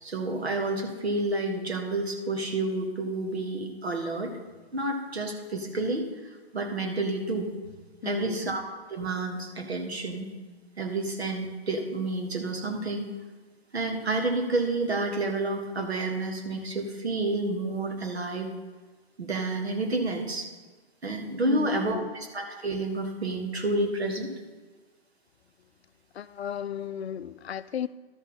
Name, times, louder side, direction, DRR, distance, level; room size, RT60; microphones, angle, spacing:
voice 1, 0.0-4.3 4.7-7.5 8.0-10.3 10.8-13.1 13.7-18.5 19.2-20.5 21.0-24.3, right 2 dB, 80° right, 1.7 m, -30 dB
voice 2, 8.0-8.5 21.4-22.1 26.1-27.9, left 9 dB, 80° left, 0.5 m, -35 dB
12.5 x 5.7 x 4.2 m
figure-of-eight pair, 125°, 31 cm